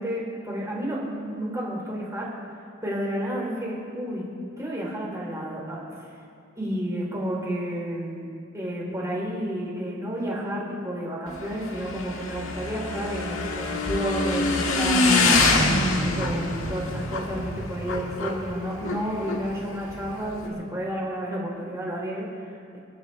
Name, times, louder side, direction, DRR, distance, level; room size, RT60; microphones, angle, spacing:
voice 1, 0.0-2.3 2.8-4.3 4.6-6.1 6.6-8.3 8.5-15.5 16.1-22.8, equal, 15° right, -5 dB, 4.3 m, -31 dB
Motorcycle / Engine, 11.3-20.5, left 2 dB, 80° left, 1.7 m, -25 dB
29.5 x 11.5 x 3.6 m, 2.5 s
head